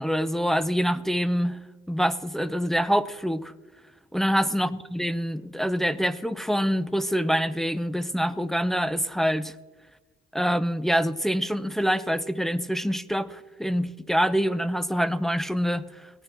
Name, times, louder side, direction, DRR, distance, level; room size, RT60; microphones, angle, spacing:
voice 1, 0.0-1.6 1.9-3.5 4.1-9.5 10.3-16.2, equal, ahead, 0.5 m, -25 dB
18.0 x 11.5 x 5.9 m
cardioid pair, 110°, 17 cm